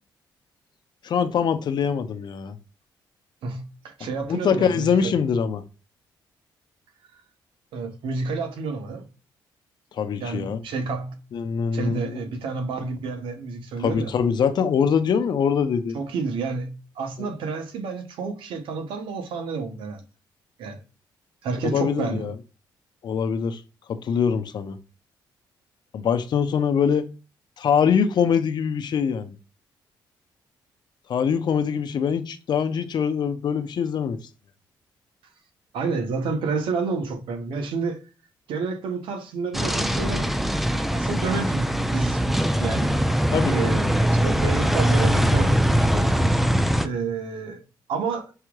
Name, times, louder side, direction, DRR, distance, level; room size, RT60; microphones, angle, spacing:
voice 1, 1.0-2.6 4.3-5.6 10.0-10.6 11.3-12.2 13.8-16.0 17.2-17.3 21.6-22.3 23.0-23.6 23.9-24.8 25.9-27.1 27.6-29.4 31.1-34.2 43.3-43.7, left 7 dB, 60° left, 0.7 m, -23 dB
voice 2, 3.4-5.1 7.7-9.1 10.2-11.1 11.7-14.1 15.9-20.0 20.6-20.8 21.4-22.3 35.7-38.0 38.5-40.3 40.7-46.1 46.8-47.6 47.9-48.3, right 4 dB, 85° right, 1.0 m, -30 dB
sound 1, 39.5-46.9, equal, ahead, 0.4 m, -22 dB
5.6 x 3.0 x 2.3 m
cardioid pair, 90°, 8 cm